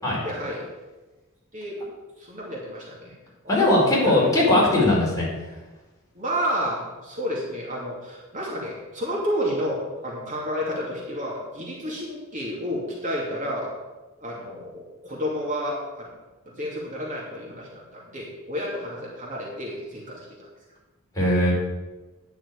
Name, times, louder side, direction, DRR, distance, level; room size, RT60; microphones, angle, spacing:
voice 1, 0.2-0.7 1.5-1.8 2.2-3.1 3.4-4.3 6.1-13.7 14.2-16.1 16.5-20.3, equal, 40° right, -3 dB, 2.5 m, -31 dB
voice 2, 3.5-5.3 21.1-21.5, left 1 dB, 15° left, -6 dB, 4.6 m, -19 dB
10.0 x 6.3 x 8.3 m, 1.2 s
head